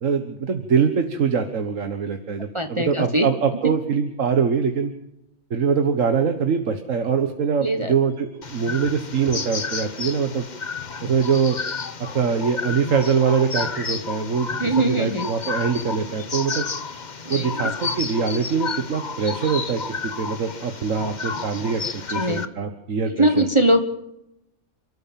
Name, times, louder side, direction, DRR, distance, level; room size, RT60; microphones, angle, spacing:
voice 1, 0.0-4.9 5.5-10.5 11.0-11.6 12.1-16.7 17.3-23.5, right 6 dB, 85° right, 6 dB, 1.7 m, -23 dB
voice 2, 2.5-3.3 3.6-3.7 7.6-7.9 14.6-15.3 17.2-17.7 22.1-22.5 23.1-23.8, right 1 dB, 25° right, 7 dB, 1.4 m, -21 dB
sound 1, 8.4-22.5, left 5 dB, 40° left, 1.2 m, -31 dB
29.5 x 13.5 x 7.5 m, 0.85 s
omnidirectional pair, 1.3 m